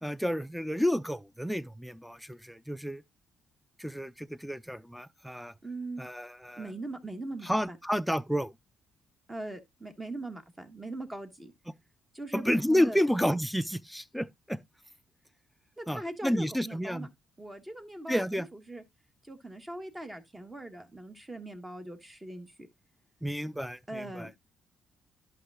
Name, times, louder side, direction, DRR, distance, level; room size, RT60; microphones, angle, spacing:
voice 1, 0.0-3.0 3.8-5.5 6.0-6.6 7.4-8.5 12.3-14.6 15.9-17.1 18.1-18.5 23.2-24.3, equal, ahead, 0.6 m, -30 dB
voice 2, 5.6-6.0 6.6-7.8 9.3-11.5 12.1-13.0 15.8-17.1 17.4-18.8 19.2-22.7 23.9-24.3, right 2 dB, 15° right, 1.5 m, -41 dB
11.0 x 6.0 x 2.3 m
cardioid pair, 90°, 0 cm